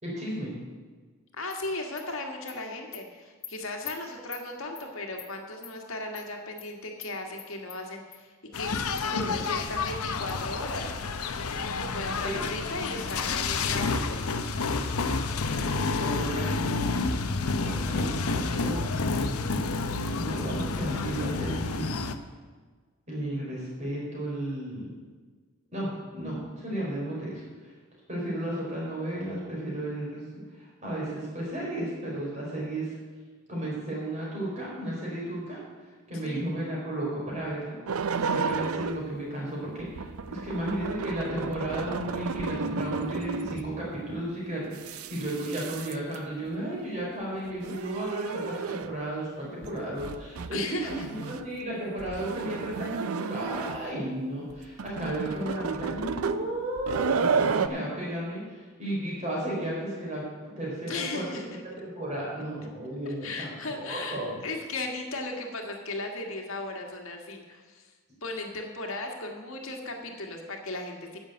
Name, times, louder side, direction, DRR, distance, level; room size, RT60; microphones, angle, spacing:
voice 1, 0.0-0.5 9.1-9.3 12.2-12.5 15.7-16.9 17.6-19.0 20.1-22.0 23.1-24.9 25.7-27.7 28.1-30.3 30.5-33.0 33.5-35.6 36.1-37.8 38.2-61.3 61.8-64.3, right 1 dB, 30° right, -5 dB, 4.5 m, -34 dB
voice 2, 1.3-10.9 11.3-14.4 36.2-36.4 50.5-51.1 60.9-61.6 63.0-67.9 68.2-71.2, left 2 dB, 70° left, 2 dB, 1.7 m, -37 dB
Animal, 1.5-1.6 2.0-2.1 2.5-2.6 2.9-3.0 3.4-3.5 3.9-4.0 4.3-4.4 4.8-4.9 5.2-5.3 5.6-5.7 6.1-6.3 6.6-6.7 7.0-7.1 7.4-7.8 8.1-8.2 8.5-8.6 9.0-9.1 9.4-9.5 9.9-10.0 10.3-10.4, left 9 dB, 25° left, 1.1 m, -43 dB
sound 1, 8.5-22.1, left 3 dB, 90° left, 0.8 m, -29 dB
sound 2, 37.9-39.1 39.8-43.8 44.6-46.2 47.4-49.0 49.6-49.7 50.0-50.6 50.8-51.5 52.0-54.0 54.5-57.7, right 5 dB, 80° right, 0.5 m, -32 dB
10.5 x 7.4 x 7.9 m, 1.4 s
head